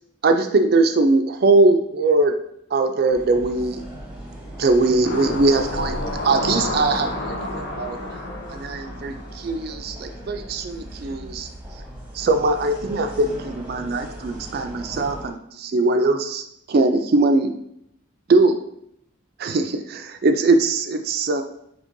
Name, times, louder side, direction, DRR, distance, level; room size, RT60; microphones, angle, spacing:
voice 1, 0.2-2.3 2.7-3.8 4.6-6.0 6.2-8.0 8.5-11.5 12.1-17.5 18.3-18.6 19.4-21.4, right 3 dB, 50° right, 6 dB, 0.3 m, -21 dB
sound 1, 3.1-15.3, equal, 5° right, 0.8 m, -38 dB
sound 2, 5.0-9.9 10.3-10.4, left 1 dB, 70° left, 0.7 m, -30 dB
5.1 x 2.9 x 2.6 m, 0.75 s
head